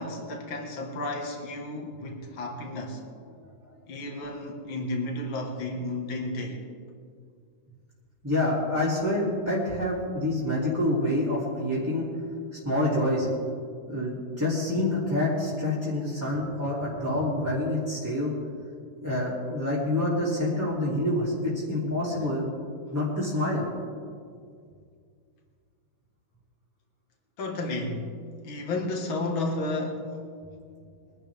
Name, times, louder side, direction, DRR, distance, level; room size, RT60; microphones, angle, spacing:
voice 1, 0.0-3.0 3.9-6.6 27.4-28.1 28.4-30.1, left 2 dB, 75° left, 2 dB, 2.5 m, -32 dB
voice 2, 8.2-12.0 12.6-13.3 13.9-18.3 19.0-22.4 22.9-23.6, left 1 dB, 10° right, -9 dB, 2.7 m, -27 dB
23.0 x 12.0 x 3.5 m, 2.2 s
omnidirectional pair, 2.3 m